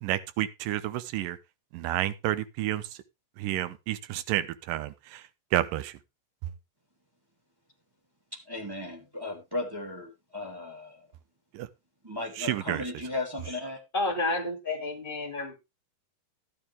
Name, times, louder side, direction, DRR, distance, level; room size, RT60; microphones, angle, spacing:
voice 1, 0.0-1.4 1.7-2.8 3.4-5.2 5.5-5.9 11.5-11.7 12.4-12.8, right 13 dB, 85° right, 2.5 m, -30 dB
voice 2, 8.5-11.1 12.0-13.8, left 2 dB, 5° right, 2.4 m, -36 dB
voice 3, 13.9-15.6, left 2 dB, 15° left, 2.3 m, -30 dB
12.5 x 9.2 x 3.4 m
omnidirectional pair, 3.9 m